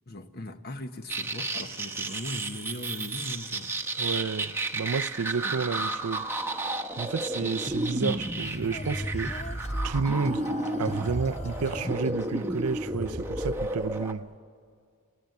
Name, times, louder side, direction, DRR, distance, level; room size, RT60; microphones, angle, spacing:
voice 1, 0.1-3.7 5.4-5.5, left 1 dB, 45° left, 1.3 m, -39 dB
sound 1, 1.1-14.1, right 2 dB, 10° right, 1.0 m, -32 dB
voice 2, 4.0-6.3 7.0-9.3 9.8-10.5 10.8-14.3, right 5 dB, 85° right, 0.6 m, -31 dB
Female singing, 7.4-12.8, left 2 dB, 30° left, 0.6 m, -41 dB
29.5 x 18.5 x 9.4 m
head